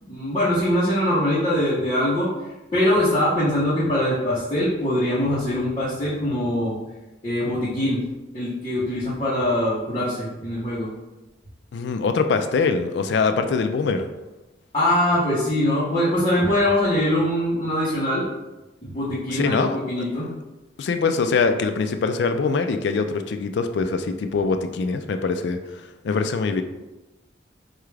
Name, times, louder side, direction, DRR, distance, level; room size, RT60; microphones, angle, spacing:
voice 1, 0.0-2.3 2.7-6.8 7.2-8.0 8.3-10.9 14.7-18.3 18.8-20.3, left 1 dB, 30° left, -10 dB, 0.9 m, -22 dB
voice 2, 11.7-14.1 19.3-19.8 20.8-26.6, left 4 dB, 70° left, 8 dB, 0.3 m, -23 dB
4.6 x 2.4 x 3.2 m, 1.1 s
head